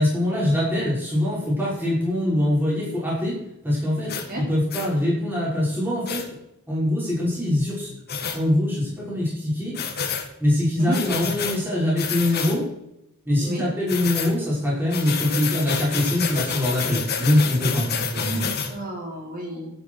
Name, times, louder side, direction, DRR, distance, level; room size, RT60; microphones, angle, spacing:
voice 1, 0.0-6.3 6.7-7.9 8.3-9.8 10.4-12.7 13.3-18.4, left 1 dB, 10° right, -7 dB, 6.0 m, -23 dB
sound 1, 4.1-4.3 4.7-4.9 6.1-6.2 8.1-8.4 9.7-10.3 10.9-11.6 12.0-12.6 13.9-14.3 14.9-18.7, left 6 dB, 45° left, 2.0 m, -28 dB
voice 2, 18.2-19.7, right 2 dB, 40° right, -1 dB, 4.0 m, -32 dB
12.0 x 10.5 x 5.0 m, 0.83 s
head